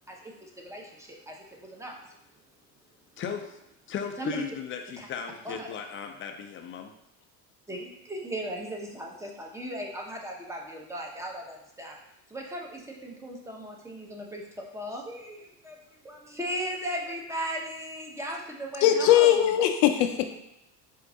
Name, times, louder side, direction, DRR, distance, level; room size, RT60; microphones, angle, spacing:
voice 1, 0.1-1.9 4.2-4.4 5.0-5.1 5.4-5.7 7.7-12.0 12.3-14.4 14.7-19.7, equal, 5° right, 0 dB, 0.7 m, -37 dB
voice 2, 3.2-3.6 3.9-6.9, left 7 dB, 25° left, 5 dB, 0.4 m, -36 dB
voice 3, 18.8-20.3, left 11 dB, 75° left, 6 dB, 0.6 m, -20 dB
4.5 x 2.5 x 3.7 m, 0.85 s
supercardioid pair, 95°, 49 cm